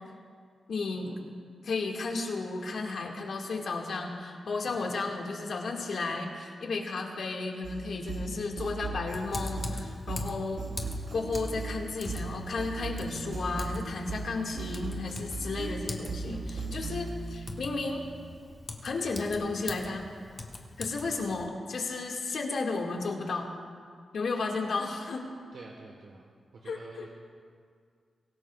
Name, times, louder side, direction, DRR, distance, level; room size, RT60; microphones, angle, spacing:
voice 1, 0.7-1.1 1.6-10.6 11.1-18.0 18.8-20.1 20.8-23.5 24.1-25.3 26.6-27.0, left 3 dB, 65° left, 0 dB, 2.0 m, -33 dB
sound 1, 7.6-17.1, right 3 dB, 60° right, 4.0 m, -38 dB
Typing, 9.1-21.4, left 2 dB, 30° left, 1.3 m, -43 dB
sound 2, 11.1-18.4, right 4 dB, 45° right, 0.5 m, -45 dB
voice 2, 16.5-16.9 21.0-21.2 25.5-26.3 26.6-27.1, right 4 dB, 75° right, -1 dB, 1.4 m, -49 dB
24.0 x 18.0 x 2.4 m, 2.1 s
wide cardioid pair, 150°, 0 cm